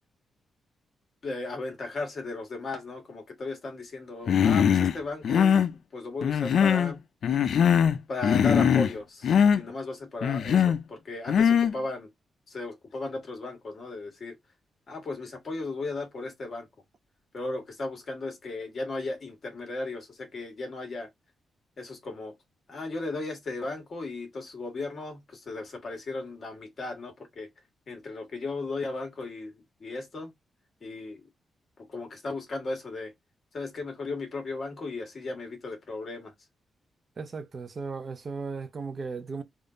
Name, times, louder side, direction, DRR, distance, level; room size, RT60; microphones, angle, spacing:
voice 1, 1.2-7.0 8.1-12.1 12.5-14.4 14.9-16.7 17.3-21.1 21.8-22.3 22.7-27.5 27.9-30.3 30.8-31.2 31.9-33.1 33.5-36.3, left 3 dB, 40° left, 1.5 m, -36 dB
Human voice, 4.3-4.9 5.2-5.7 6.2-6.9 7.2-8.9 9.2-9.6 10.2-10.8 11.3-11.7, left 8 dB, 65° left, 0.4 m, -21 dB
voice 2, 37.2-39.4, right 4 dB, 35° right, 0.4 m, -36 dB
3.6 x 2.4 x 3.8 m
wide cardioid pair, 155°, 0 cm